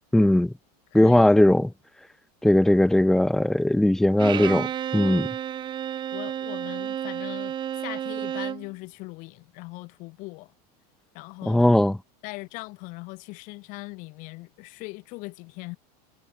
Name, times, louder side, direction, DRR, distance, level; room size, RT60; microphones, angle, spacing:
voice 1, 0.1-0.5 0.9-1.7 2.4-4.7 4.9-5.3 11.4-12.0, left 1 dB, ahead, 1.3 m, -19 dB
voice 2, 0.9-1.4 6.1-10.5 11.1-12.0 12.2-15.8, left 25 dB, 40° left, 4.6 m, -40 dB
Bowed string instrument, 4.2-8.7, right 10 dB, 20° right, 4.4 m, -31 dB
supercardioid pair, 170°, 20 cm